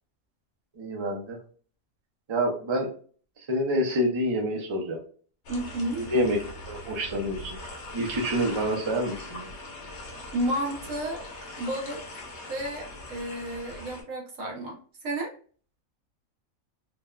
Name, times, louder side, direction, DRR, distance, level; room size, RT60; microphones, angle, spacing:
voice 1, 0.8-1.4 2.3-2.9 3.5-5.0 6.0-6.4 6.7-7.6 7.9-9.5, equal, 40° right, 1 dB, 0.4 m, -27 dB
sound 1, 5.4-14.0, left 2 dB, 60° left, 1.0 m, -41 dB
voice 2, 5.5-6.1 10.3-11.3 11.6-12.2 12.5-15.3, right 1 dB, 70° right, 0 dB, 1.2 m, -32 dB
3.3 x 2.2 x 2.3 m, 0.43 s
omnidirectional pair, 1.5 m